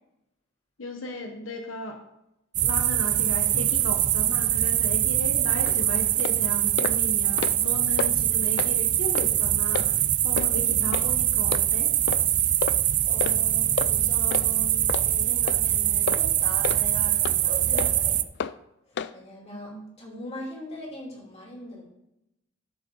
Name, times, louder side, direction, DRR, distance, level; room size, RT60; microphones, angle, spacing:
voice 1, 0.8-2.0 2.6-10.0 10.2-11.9 19.5-19.9, left 1 dB, 85° left, 3 dB, 1.1 m, -36 dB
sound 1, 2.5-18.2, right 12 dB, 40° right, 0.4 m, -23 dB
sound 2, 5.6-5.8 6.2-6.4 6.8-7.0 7.3-7.7 8.0-8.1 8.6-8.7 9.2-9.3 9.7-9.9 10.4-10.5 10.9-11.1 11.5-11.6 12.1-12.2 12.6-12.8 13.2-13.4 13.8-13.9 14.3-14.5 14.9-15.1 15.5-15.6 16.1-16.2 16.6-16.8 17.2-17.4 17.8-17.9 18.4-18.5 19.0-19.1, left 7 dB, 55° left, 0.3 m, -30 dB
voice 2, 10.4-11.0 12.7-18.2 19.1-21.8, left 1 dB, 30° left, -3 dB, 3.0 m, -41 dB
12.5 x 6.7 x 3.9 m, 0.85 s
head